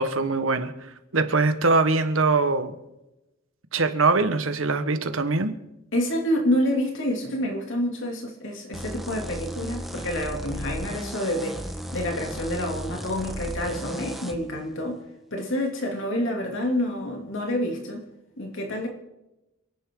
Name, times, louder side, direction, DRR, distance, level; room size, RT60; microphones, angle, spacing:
voice 1, 0.0-2.8 3.7-5.6, right 3 dB, 65° right, 9 dB, 1.4 m, -23 dB
voice 2, 5.9-15.0 15.3-18.0 18.4-18.9, left 1 dB, 60° left, 1 dB, 2.9 m, -28 dB
sound 1, 8.7-14.4, equal, ahead, 1.4 m, -35 dB
28.5 x 10.5 x 3.9 m, 0.95 s
head